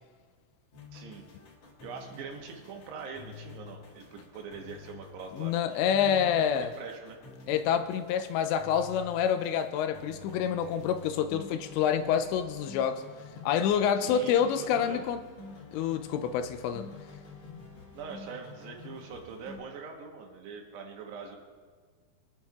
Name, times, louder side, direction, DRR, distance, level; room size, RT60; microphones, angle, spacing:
sound 1, 0.7-19.6, left 4 dB, 50° left, 2.1 m, -48 dB
voice 1, 0.9-1.2 1.8-7.2 14.0-15.0 17.9-21.4, right 5 dB, 75° right, 2 dB, 3.1 m, -43 dB
voice 2, 5.4-6.7 7.5-13.0 13.4-15.2 15.7-16.9, left 8 dB, 85° left, 9 dB, 2.7 m, -27 dB
23.5 x 10.0 x 2.4 m, 1.5 s
omnidirectional pair, 5.2 m